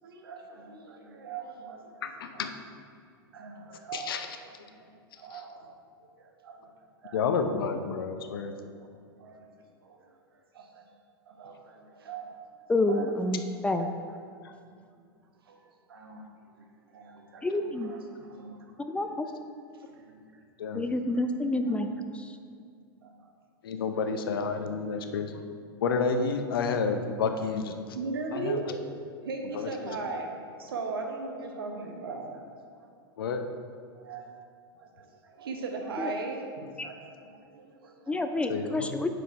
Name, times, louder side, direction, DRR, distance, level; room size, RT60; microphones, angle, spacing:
voice 1, 0.0-1.9 2.2-2.5 3.3-5.7 6.0-7.2 7.6-7.7 8.8-9.5 9.8-10.9 11.3-12.4 12.9-13.2 13.8-14.2 15.0-15.1 15.4-19.2 19.7-20.5 21.1-21.2 21.5-21.8 23.0-23.3 24.4-24.5 24.9-25.1 27.9-32.4 32.7-32.9 33.9-34.3 34.7-38.5, right 3 dB, 70° right, 2 dB, 1.1 m, -40 dB
voice 2, 2.0-2.5 3.9-4.3 7.1-8.5 20.6-20.9 23.6-25.4 25.8-27.7 28.3-28.8 29.5-30.0 33.2-33.4 38.5-39.0, left 5 dB, 65° left, 7 dB, 0.7 m, -30 dB
voice 3, 12.7-13.9 17.4-17.9 18.8-19.3 20.7-21.9 22.1-22.3 38.1-39.1, left 2 dB, 10° left, 7 dB, 0.4 m, -28 dB
7.9 x 5.0 x 4.5 m, 2.3 s
figure-of-eight pair, 90°, 13 cm